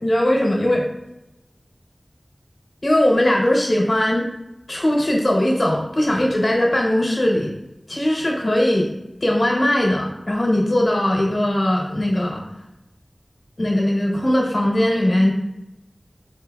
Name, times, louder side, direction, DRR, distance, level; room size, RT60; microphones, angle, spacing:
voice 1, 0.0-0.8 2.8-4.3 4.7-7.5 7.9-8.9 9.2-12.4 13.6-15.3, left 1 dB, 55° left, -1 dB, 0.9 m, -19 dB
4.4 x 2.9 x 2.3 m, 0.94 s
wide cardioid pair, 50°, 0 cm